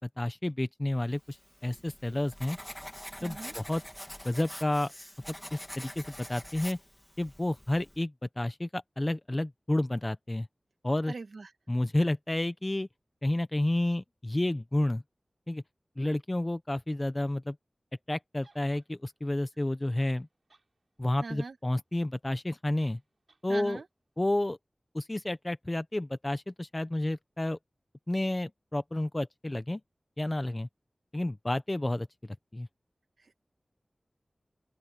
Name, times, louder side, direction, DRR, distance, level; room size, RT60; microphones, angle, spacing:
voice 1, 0.0-1.4 1.6-2.6 3.2-3.8 4.2-4.9 5.5-6.8 7.2-10.5 10.8-11.1 11.7-12.9 13.2-15.0 15.5-15.6 16.0-17.5 18.1-20.3 21.0-23.0 23.4-23.8 24.2-24.6 24.9-27.6 28.1-29.8 30.2-30.7 31.1-32.7, left 1 dB, 25° left, 1.1 m, -30 dB
Writing, 1.3-8.0, equal, 10° left, 2.7 m, -45 dB
voice 2, 3.2-3.5 11.1-11.5 21.2-21.6 23.5-23.8, right 3 dB, 85° right, 2.3 m, -41 dB
sound 1, 18.4-18.9 19.7-19.8 19.9-20.7 21.0-21.1 22.8-23.0 23.3-23.4, right 3 dB, 60° right, 7.5 m, -62 dB
open air
wide cardioid pair, 70°, 0 cm